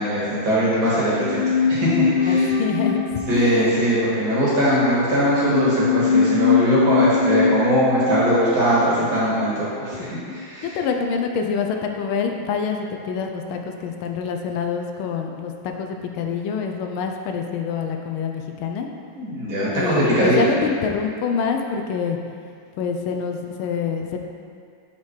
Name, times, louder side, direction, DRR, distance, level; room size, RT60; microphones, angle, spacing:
voice 1, 0.0-1.9 2.2-2.5 3.3-10.7 19.2-20.6, right 1 dB, 65° right, -9 dB, 2.7 m, -21 dB
sound 1, 1.1-10.4 10.7-10.8, left 5 dB, 55° left, 0.7 m, -23 dB
voice 2, 2.3-3.7 10.0-10.1 10.6-18.9 19.7-22.2 22.8-24.2, left 6 dB, 80° left, 4 dB, 1.4 m, -26 dB
7.2 x 5.7 x 3.2 m, 2.2 s
omnidirectional pair, 2.3 m